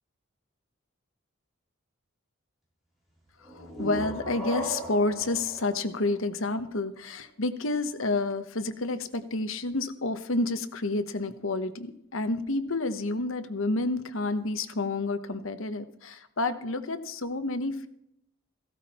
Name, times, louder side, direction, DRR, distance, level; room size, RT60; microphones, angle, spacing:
voice 1, 3.4-17.9, left 2 dB, 75° left, 10 dB, 1.1 m, -29 dB
sound 1, 3.4-7.0, equal, ahead, 4.9 m, -38 dB
16.0 x 13.0 x 4.3 m, 0.77 s
head